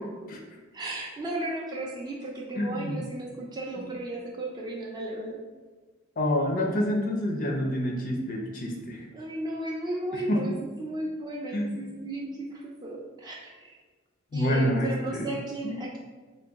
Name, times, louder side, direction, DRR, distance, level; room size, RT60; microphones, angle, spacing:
voice 1, 0.7-5.4 9.1-13.8 14.3-16.0, right 1 dB, 20° right, -3 dB, 0.3 m, -35 dB
voice 2, 2.6-3.0 3.8-3.9 6.2-9.0 10.3-10.4 11.5-11.8 14.3-15.2 15.6-15.7, left 1 dB, 40° left, 0 dB, 0.4 m, -27 dB
3.8 x 2.2 x 3.4 m, 1.3 s
head